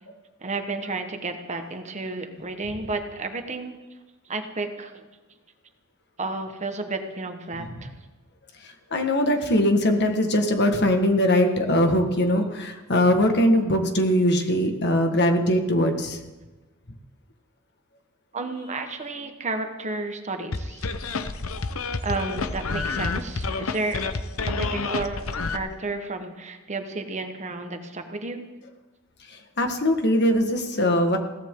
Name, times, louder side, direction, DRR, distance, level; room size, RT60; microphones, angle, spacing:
voice 1, 0.4-3.8 4.3-5.1 6.2-7.9 18.3-20.9 22.0-24.0 24.6-28.4, right 3 dB, 35° right, 6 dB, 1.4 m, -32 dB
voice 2, 8.9-16.2 29.6-31.2, left 1 dB, 55° left, 5 dB, 1.7 m, -21 dB
sound 1, 20.5-25.6, left 3 dB, 90° left, 1.0 m, -29 dB
21.5 x 16.5 x 3.9 m, 1.2 s
head